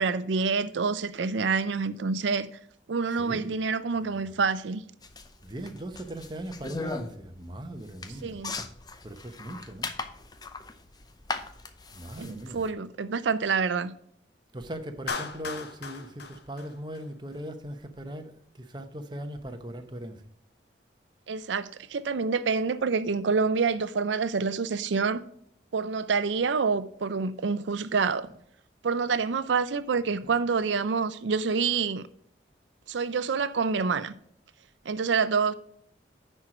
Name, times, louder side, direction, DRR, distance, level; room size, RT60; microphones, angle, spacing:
voice 1, 0.0-2.5 2.9-4.8 8.2-8.5 12.2-13.9 21.3-25.2 25.7-28.3 28.8-32.0 32.9-34.1 34.9-35.5, right 5 dB, 85° right, 0.5 m, -27 dB
voice 2, 3.1-3.6 3.9-4.4 5.4-8.4 9.0-9.9 11.9-12.6 14.5-20.2 28.2-28.4 30.0-30.4, right 1 dB, 25° right, 0.8 m, -39 dB
sound 1, 5.0-12.7, left 3 dB, 20° left, 0.6 m, -38 dB
Clapping, 15.1-17.4, left 4 dB, 65° left, 1.0 m, -37 dB
10.5 x 4.5 x 4.9 m
head